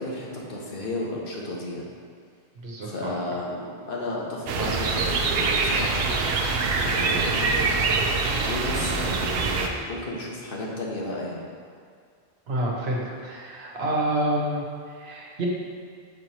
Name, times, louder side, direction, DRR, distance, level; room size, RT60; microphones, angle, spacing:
voice 1, 0.0-1.9 2.8-6.1 6.9-7.9 8.4-11.4, left 1 dB, 60° left, -3 dB, 1.1 m, -33 dB
voice 2, 2.6-3.2 12.5-15.5, right 1 dB, 90° right, -3 dB, 1.2 m, -28 dB
sound 1, 4.5-9.7, right 4 dB, 70° right, 0.8 m, -24 dB
5.7 x 3.0 x 5.5 m, 2.1 s
omnidirectional pair, 1.0 m